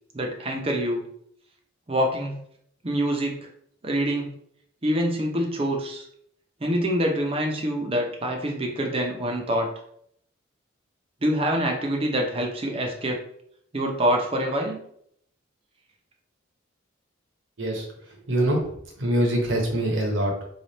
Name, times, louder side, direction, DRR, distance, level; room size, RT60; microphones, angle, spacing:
voice 1, 0.1-1.0 1.9-2.4 2.8-3.4 3.8-4.3 4.8-6.1 6.6-9.7 11.2-13.2 13.7-14.8, equal, 25° right, 1 dB, 0.6 m, -25 dB
voice 2, 18.3-18.7 19.0-20.3, right 1 dB, 65° right, 0 dB, 1.0 m, -23 dB
3.2 x 2.4 x 4.0 m, 0.69 s
head